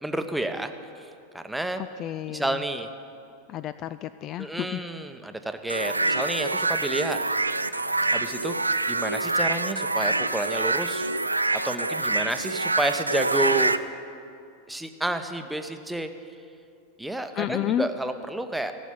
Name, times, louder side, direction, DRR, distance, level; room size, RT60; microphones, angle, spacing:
voice 1, 0.0-1.8 2.3-2.9 4.4-7.2 8.1-8.5 8.9-11.1 11.5-13.8 14.7-16.1 17.0-18.7, right 1 dB, 5° right, 7 dB, 0.9 m, -30 dB
voice 2, 1.8-2.6 3.5-4.8 17.4-17.9, left 12 dB, 35° left, 14 dB, 0.3 m, -31 dB
sound 1, 5.7-13.8, right 2 dB, 85° right, 0.4 m, -26 dB
15.0 x 7.2 x 9.9 m, 2.5 s
figure-of-eight pair, 90°, 0 cm